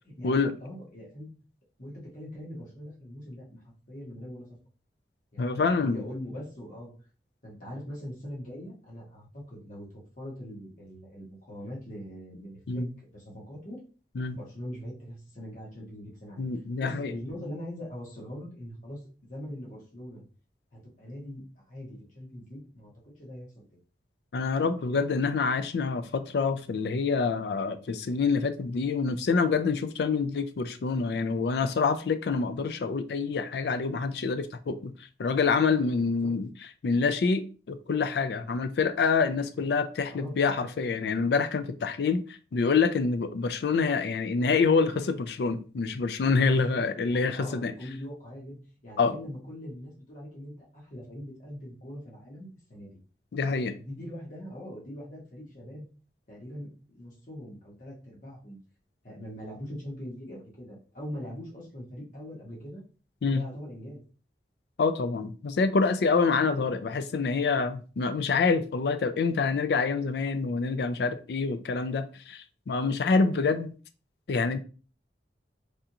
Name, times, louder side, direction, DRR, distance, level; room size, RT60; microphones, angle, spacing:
voice 1, 0.1-1.3 1.8-3.6 3.9-4.5 5.3-6.9 7.4-9.9 10.2-13.8 14.3-16.4 16.8-19.0 19.3-20.2 20.7-23.8 36.2-36.4 39.5-39.6 40.1-40.4 46.5-53.0 53.7-55.8 56.3-58.6 59.0-62.8 63.3-64.0, equal, 45° left, 1.3 m, -42 dB
voice 2, 5.4-6.0 12.7-12.9 14.2-14.4 16.4-17.1 24.3-34.9 35.2-36.5 36.8-42.2 42.5-47.7 49.0-49.2 53.3-53.8 63.2-63.4 64.8-73.7 74.3-74.6, left 4 dB, 65° left, 0.4 m, -26 dB
3.4 x 2.5 x 2.8 m
head